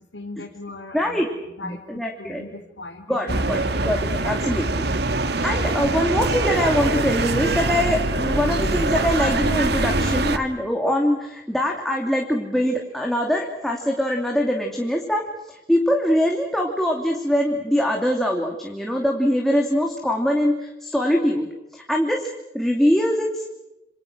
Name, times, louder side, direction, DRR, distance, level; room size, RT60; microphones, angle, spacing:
voice 1, 0.0-3.7, left 2 dB, 80° left, 0 dB, 3.1 m, -39 dB
voice 2, 0.9-1.3 1.6-2.4 3.1-5.0 5.4-23.4, equal, ahead, 0 dB, 2.8 m, -23 dB
sound 1, 3.3-10.4, right 2 dB, 65° right, 1.9 m, -23 dB
28.0 x 27.0 x 6.3 m, 0.96 s
head